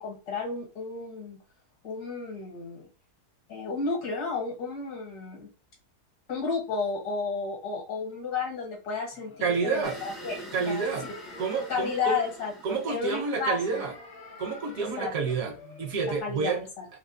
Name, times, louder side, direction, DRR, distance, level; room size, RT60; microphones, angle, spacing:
voice 1, 0.0-1.4 1.8-2.9 3.5-5.5 6.3-10.8 11.7-13.9 15.0-15.1 16.0-16.5 16.8-16.9, left 4 dB, 75° left, 1.8 m, -32 dB
sound 1, 9.1-16.2, left 4 dB, 60° left, 0.6 m, -48 dB
voice 2, 9.4-10.0 10.5-11.1 11.4-12.2 12.6-13.9 14.4-16.6, right 5 dB, 65° right, 1.1 m, -29 dB
sound 2, 9.8-14.4, equal, ahead, 0.5 m, -46 dB
3.5 x 2.7 x 2.6 m
omnidirectional pair, 1.7 m